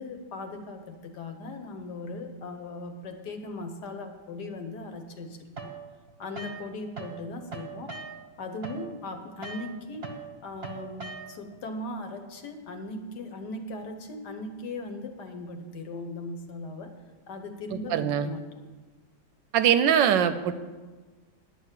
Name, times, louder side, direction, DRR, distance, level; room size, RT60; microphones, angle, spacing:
voice 1, 0.0-5.4 6.2-8.0 8.4-10.1 10.4-16.9 17.3-18.4, left 2 dB, 65° left, 6 dB, 1.4 m, -38 dB
sound 1, 5.6-7.2 7.5-11.6, right 4 dB, 40° right, 1.1 m, -41 dB
voice 2, 17.7-18.3 19.5-20.5, right 9 dB, 75° right, 11 dB, 1.2 m, -22 dB
10.0 x 5.7 x 8.2 m, 1.3 s
omnidirectional pair, 2.1 m